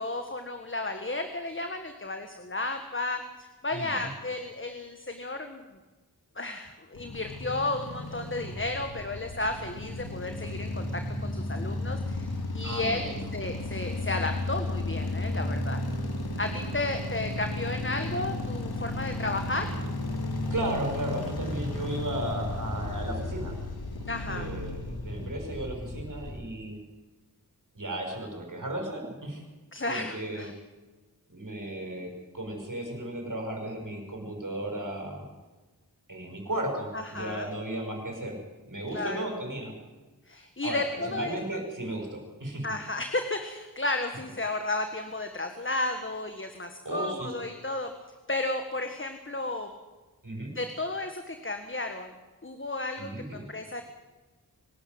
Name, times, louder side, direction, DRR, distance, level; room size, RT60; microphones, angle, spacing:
voice 1, 0.0-5.6 6.3-15.8 16.4-19.7 24.1-24.5 29.7-30.5 36.9-37.5 38.9-39.3 40.3-41.4 42.6-47.9 48.3-49.7 50.5-52.1 52.4-53.8, left 2 dB, 35° left, 6 dB, 1.7 m, -33 dB
voice 2, 3.7-4.1 12.6-13.3 20.5-23.6 24.3-26.8 27.7-29.4 29.9-30.5 31.3-35.3 36.1-38.4 38.6-39.7 40.6-42.7 46.8-47.3 50.2-50.5 53.0-53.5, right 1 dB, 60° right, 2 dB, 6.4 m, -35 dB
sound 1, 6.9-26.4, left 2 dB, 85° left, 2.7 m, -34 dB
23.5 x 12.5 x 9.6 m, 1.2 s
wide cardioid pair, 60°, 37 cm